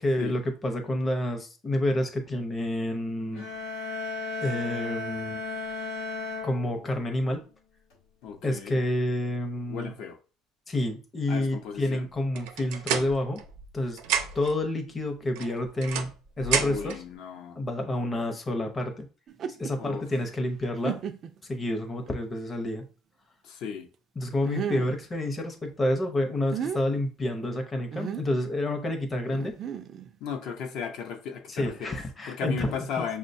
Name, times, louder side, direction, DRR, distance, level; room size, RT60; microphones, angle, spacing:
voice 1, 0.0-3.4 4.4-5.4 6.4-7.4 8.4-9.9 10.7-13.4 13.7-14.0 14.3-16.1 16.4-17.0 17.6-19.1 19.5-21.0 21.4-22.8 24.2-29.5 31.5-33.1, left 1 dB, 20° left, 0.6 m, -29 dB
sound 1, 3.3-7.2, left 3 dB, 90° left, 1.0 m, -35 dB
voice 2, 8.2-8.8 9.7-10.2 11.3-12.1 16.6-17.6 19.8-20.1 23.4-23.9 30.2-32.0 32.3-33.2, left 6 dB, 60° left, 0.6 m, -35 dB
Locking Door, 12.3-13.7 14.0-14.6 15.3-17.0, right 7 dB, 90° right, 0.6 m, -30 dB
sound 2, 19.3-19.7 20.3-20.4 20.8-21.4 22.1-22.2 24.4-25.0 26.3-26.8 27.9-28.3 29.3-30.1, right 8 dB, 40° right, 0.3 m, -34 dB
6.1 x 2.1 x 2.6 m
cardioid pair, 145°, 0 cm